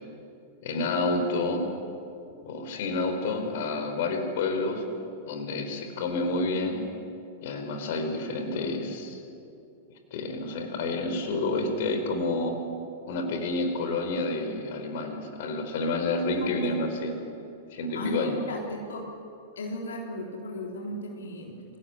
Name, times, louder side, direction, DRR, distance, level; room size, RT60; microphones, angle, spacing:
voice 1, 0.6-1.6 2.4-4.8 5.3-6.8 7.4-9.2 10.1-12.5 13.1-17.1 17.7-18.4, left 2 dB, 60° left, 5 dB, 4.2 m, -29 dB
voice 2, 17.9-19.1 19.6-21.5, left 1 dB, 75° left, -1 dB, 3.9 m, -36 dB
26.0 x 17.5 x 9.8 m, 2.6 s
figure-of-eight pair, 100°, 0 cm